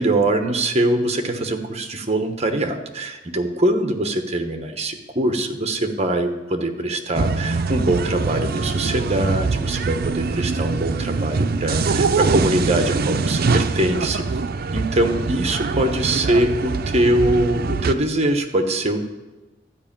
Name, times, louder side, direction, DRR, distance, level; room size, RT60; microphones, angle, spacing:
voice 1, 0.0-14.3 14.7-19.1, right 1 dB, 35° right, 6 dB, 1.1 m, -22 dB
sound 1, 7.2-18.0, right 4 dB, 55° right, 0.5 m, -23 dB
11.5 x 5.3 x 8.7 m, 1.1 s
head